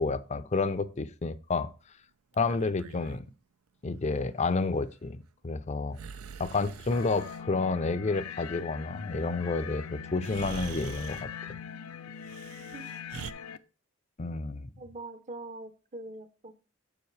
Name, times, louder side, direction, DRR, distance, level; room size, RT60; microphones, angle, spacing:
voice 1, 0.0-1.7 2.4-3.3 3.8-5.2 5.4-6.0 6.4-11.3 14.2-14.7, left 3 dB, 30° left, 0.5 m, -30 dB
Breathing, 2.3-3.3 5.9-7.4 9.6-9.7 10.2-11.3 12.2-13.3, right 6 dB, 80° right, 0.5 m, -44 dB
sound 1, 6.9-13.6, left 7 dB, 85° left, 0.6 m, -42 dB
voice 2, 14.8-16.5, right 2 dB, 35° right, 0.8 m, -43 dB
7.3 x 7.1 x 3.2 m
head